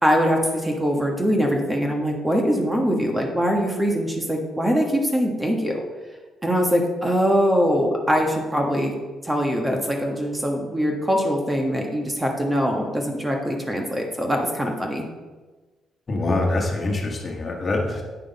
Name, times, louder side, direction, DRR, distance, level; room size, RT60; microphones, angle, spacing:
voice 1, 0.0-5.8 6.4-8.9 9.2-15.0, equal, 15° right, 1 dB, 1.3 m, -22 dB
voice 2, 16.1-18.0, left 2 dB, 35° left, 1 dB, 1.5 m, -24 dB
8.9 x 6.1 x 4.1 m, 1.3 s
cardioid pair, 90°, 0 cm